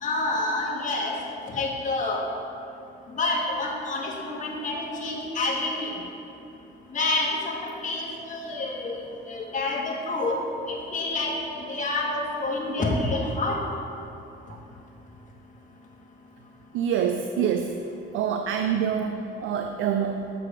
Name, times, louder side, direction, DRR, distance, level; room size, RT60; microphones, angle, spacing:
voice 1, 0.0-1.2 1.5-2.2 3.1-5.9 6.9-13.6, left 2 dB, 40° left, -2 dB, 1.6 m, -28 dB
voice 2, 16.7-17.7 18.1-20.3, right 8 dB, 80° right, 6 dB, 0.5 m, -26 dB
7.0 x 6.6 x 4.9 m, 2.7 s
cardioid pair, 90°, 20 cm